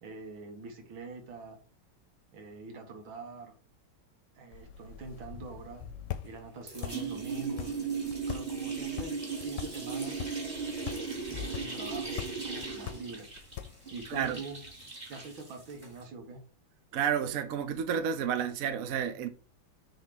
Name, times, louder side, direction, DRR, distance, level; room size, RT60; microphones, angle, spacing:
voice 1, 0.0-1.6 2.3-3.6 4.4-5.9 6.2-7.8 8.3-10.2 11.3-13.3 13.9-14.6 15.1-16.4, right 3 dB, 85° right, 2.1 m, -44 dB
sound 1, 4.5-14.1, left 11 dB, 70° left, 1.2 m, -44 dB
sound 2, 5.8-6.4 6.7-16.0, right 4 dB, 25° right, 1.8 m, -37 dB
voice 2, 16.9-19.3, right 8 dB, 60° right, 1.0 m, -30 dB
6.5 x 3.5 x 4.9 m
omnidirectional pair, 2.1 m